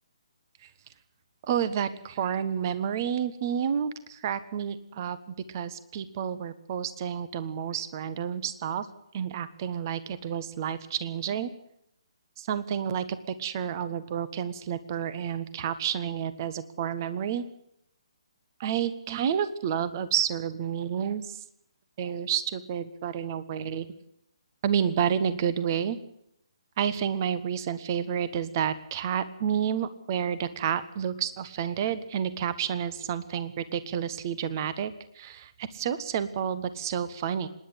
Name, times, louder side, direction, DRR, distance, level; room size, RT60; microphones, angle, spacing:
voice 1, 1.5-5.2 5.5-8.9 9.1-11.5 12.4-17.4 18.6-21.4 22.0-23.9 24.6-26.0 26.8-37.5, right 8 dB, 35° right, 14 dB, 1.4 m, -30 dB
26.0 x 11.0 x 10.0 m, 0.76 s
figure-of-eight pair, 140°, 3 cm